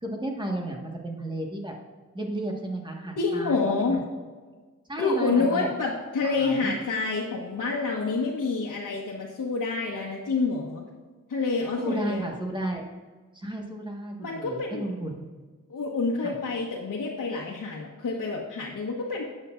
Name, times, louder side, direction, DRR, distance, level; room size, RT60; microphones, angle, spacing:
voice 1, 0.0-1.7 2.1-4.0 4.9-5.7 6.2-6.7 11.8-12.9 13.3-15.2 16.2-16.3, right 1 dB, 15° right, 0 dB, 1.6 m, -33 dB
voice 2, 3.2-4.0 5.0-10.8 11.3-12.3 14.2-14.8 15.7-19.2, left 4 dB, 85° left, -4 dB, 1.3 m, -28 dB
12.5 x 8.8 x 2.6 m, 1.4 s
wide cardioid pair, 75°, 31 cm